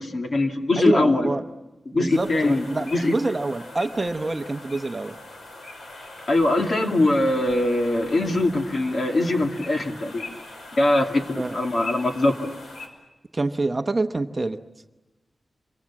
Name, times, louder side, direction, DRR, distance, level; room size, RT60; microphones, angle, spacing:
voice 1, 0.0-1.3 1.9-2.7 2.9-3.2 6.3-10.3 10.8-12.5, left 2 dB, 45° left, 3 dB, 2.3 m, -22 dB
voice 2, 0.8-1.4 1.9-5.2 11.4-11.6 13.3-14.6, right 2 dB, 25° right, 7 dB, 0.9 m, -26 dB
sound 1, 2.1-12.9, left 2 dB, 85° left, 5.4 m, -41 dB
28.0 x 23.5 x 7.3 m, 1.1 s
wide cardioid pair, 165°, 0 cm